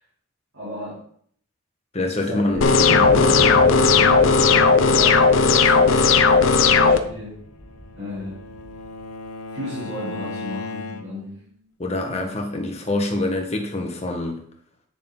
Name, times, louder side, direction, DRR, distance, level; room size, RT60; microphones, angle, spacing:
voice 1, 0.5-1.0 2.1-7.4 8.0-8.4 9.5-11.4 12.1-12.3, left 1 dB, 60° right, -10 dB, 3.8 m, -34 dB
voice 2, 1.9-2.6 3.0-3.1 11.8-14.4, left 2 dB, 30° left, 2 dB, 1.4 m, -25 dB
Wind, 2.5-9.0, left 1 dB, 5° left, 2.8 m, -34 dB
sound 1, 2.6-7.0, left 4 dB, 60° left, 0.6 m, -15 dB
Bowed string instrument, 7.4-11.4, left 3 dB, 90° left, 0.8 m, -36 dB
8.9 x 6.8 x 3.9 m, 0.62 s
head